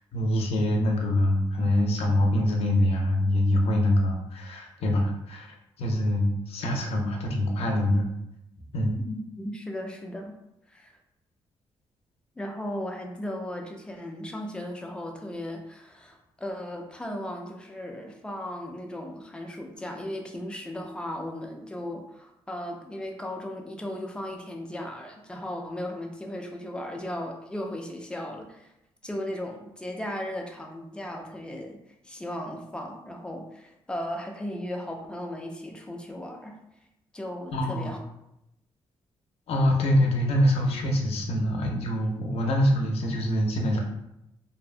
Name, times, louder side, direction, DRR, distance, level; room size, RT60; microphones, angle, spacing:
voice 1, 0.1-5.5 5.8-8.1 8.7-9.0 37.5-37.9 39.5-43.8, left 1 dB, 70° left, 1 dB, 0.5 m, -24 dB
voice 2, 9.0-10.4 10.7-10.9 12.4-28.7 29.0-36.6 37.1-38.0, left 1 dB, 10° left, 2 dB, 0.4 m, -36 dB
2.7 x 2.1 x 2.4 m, 0.83 s
cardioid pair, 110°, 11 cm